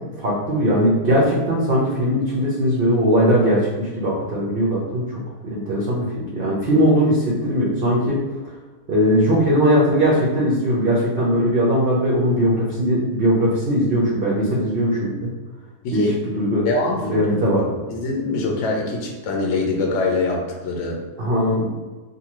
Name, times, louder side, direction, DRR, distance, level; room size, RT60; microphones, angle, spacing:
voice 1, 0.2-5.2 5.5-8.2 8.9-15.3 15.9-16.0 16.4-16.7 17.0-17.7 21.2-21.7, equal, 60° right, -6 dB, 0.5 m, -19 dB
voice 2, 16.6-17.3 17.9-21.0, left 3 dB, 65° left, 1 dB, 0.8 m, -23 dB
2.6 x 2.6 x 2.9 m, 1.3 s
omnidirectional pair, 1.7 m